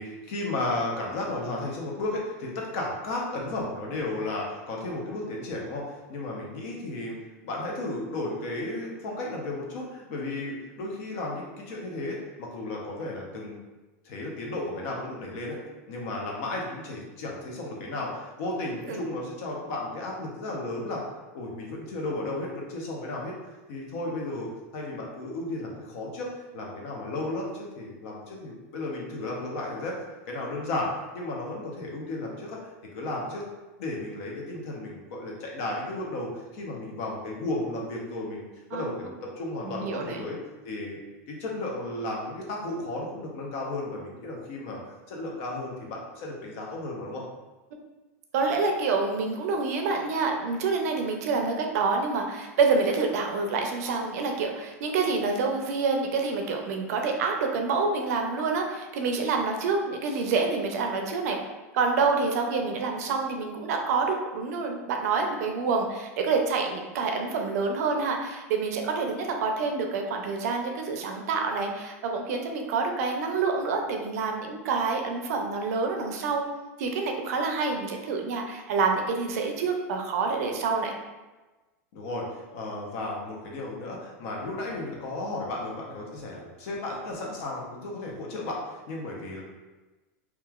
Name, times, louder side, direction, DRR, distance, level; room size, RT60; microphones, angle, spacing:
voice 1, 0.0-7.2 7.4-13.6 14.0-15.6 15.9-21.1 21.3-23.3 23.7-30.0 30.3-33.4 33.8-40.4 40.6-41.0 41.3-47.2 81.9-89.4, left 2 dB, 65° left, -2 dB, 0.7 m, -34 dB
voice 2, 39.6-40.3 48.3-61.4 61.7-76.4 76.8-80.9, right 4 dB, 70° right, 3 dB, 0.5 m, -27 dB
2.9 x 2.3 x 2.3 m, 1.2 s
supercardioid pair, 135°, 9 cm